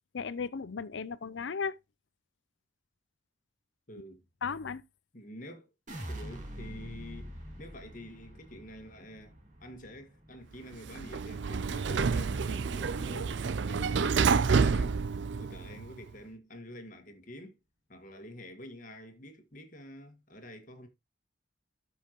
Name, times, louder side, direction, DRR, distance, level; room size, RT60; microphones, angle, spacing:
voice 1, 0.1-1.8 4.4-4.8, left 5 dB, 70° left, 0.5 m, -35 dB
voice 2, 3.9-4.2 5.1-5.7 6.1-13.4 13.7-15.0 15.4-17.6 17.9-20.9, equal, 40° left, 1.7 m, -48 dB
sound 1, 5.9-12.1 12.4-13.0, equal, 40° right, 2.3 m, -45 dB
Sliding door, 10.7-15.9, right 5 dB, 65° right, 0.5 m, -29 dB
13.0 x 5.6 x 2.9 m
head